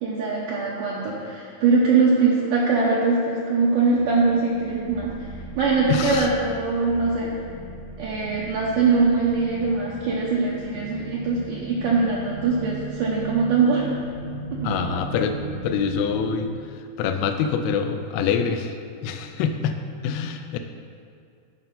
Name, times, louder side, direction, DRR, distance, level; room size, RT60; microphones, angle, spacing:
voice 1, 0.0-5.3 5.6-7.4 8.0-13.9 14.5-15.0, right 4 dB, 80° right, -5 dB, 1.9 m, -22 dB
sound 1, 3.9-16.6, right 2 dB, 45° right, 0.9 m, -37 dB
voice 2, 5.9-6.3 14.6-15.4 15.6-16.5 16.8-18.7 19.0-19.7 20.0-20.6, left 6 dB, 80° left, 6 dB, 2.3 m, -25 dB
11.5 x 5.5 x 3.8 m, 2.3 s
omnidirectional pair, 4.7 m